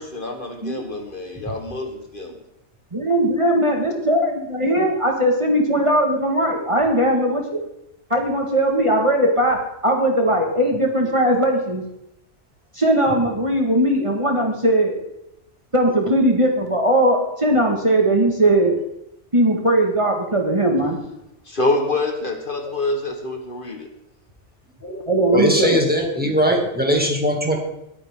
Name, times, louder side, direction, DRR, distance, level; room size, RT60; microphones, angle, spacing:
voice 1, 0.0-2.3 3.0-3.8 21.5-23.9 24.8-25.0, left 2 dB, 45° left, 4 dB, 1.6 m, -27 dB
voice 2, 2.9-7.6 8.1-9.6 9.8-11.8 12.7-15.0 15.7-18.7 19.3-21.0 25.1-25.8, right 1 dB, 25° right, 1 dB, 1.8 m, -19 dB
voice 3, 25.3-27.6, equal, 10° right, 0 dB, 2.4 m, -20 dB
21.0 x 9.2 x 3.7 m, 0.84 s
omnidirectional pair, 1.2 m